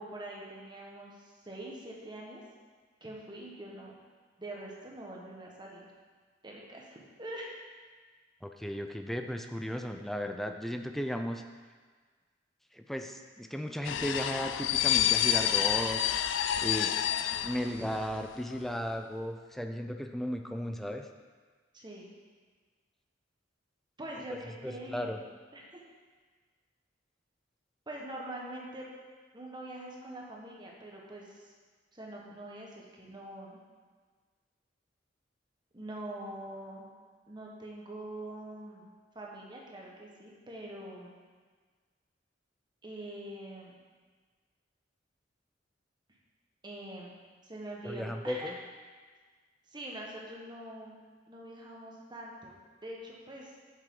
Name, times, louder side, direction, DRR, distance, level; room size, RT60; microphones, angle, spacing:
voice 1, 0.0-2.4 3.0-3.9 4.4-5.8 6.4-7.5 21.7-22.1 24.0-25.8 27.9-28.9 29.3-31.5 31.9-33.6 35.7-36.8 37.3-41.1 42.8-43.7 46.6-47.1 47.4-48.5 49.7-51.0 51.3-53.6, right 1 dB, 25° right, -2 dB, 1.3 m, -44 dB
voice 2, 8.4-11.4 12.7-16.0 16.6-16.9 17.4-21.1 24.3-24.4 24.6-25.2 47.8-48.6, equal, ahead, 5 dB, 0.4 m, -35 dB
sound 1, 13.9-18.2 18.5-18.7, left 11 dB, 80° left, 0.4 m, -29 dB
7.8 x 7.7 x 3.8 m, 1.5 s
head